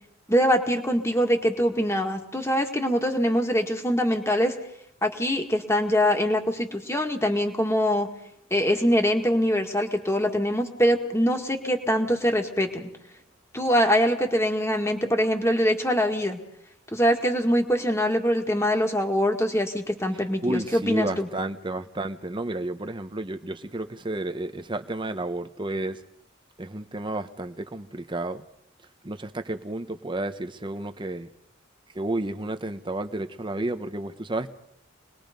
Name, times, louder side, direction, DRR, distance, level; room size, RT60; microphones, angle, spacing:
voice 1, 0.3-4.5 5.0-8.1 8.5-12.9 13.5-16.4 16.9-21.3, equal, 15° left, 2.0 m, -23 dB
voice 2, 20.4-26.0 26.6-28.4 29.0-31.3 31.9-34.5, right 2 dB, 25° right, 0.9 m, -31 dB
26.0 x 20.5 x 5.3 m
head